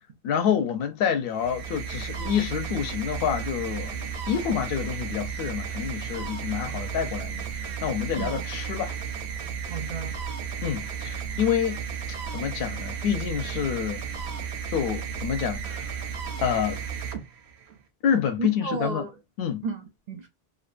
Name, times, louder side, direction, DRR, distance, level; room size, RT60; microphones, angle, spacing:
voice 1, 0.2-9.0 10.6-11.8 12.3-14.0 14.7-16.0 16.4-16.8 18.0-19.1 19.4-19.6, left 8 dB, 65° left, 0.7 m, -28 dB
sound 1, 1.3-17.8, right 7 dB, 85° right, 0.9 m, -34 dB
voice 2, 6.5-6.8 8.2-8.4 9.7-10.2 18.4-19.1 19.6-20.3, right 4 dB, 55° right, 0.5 m, -33 dB
2.6 x 2.2 x 2.4 m
omnidirectional pair, 1.1 m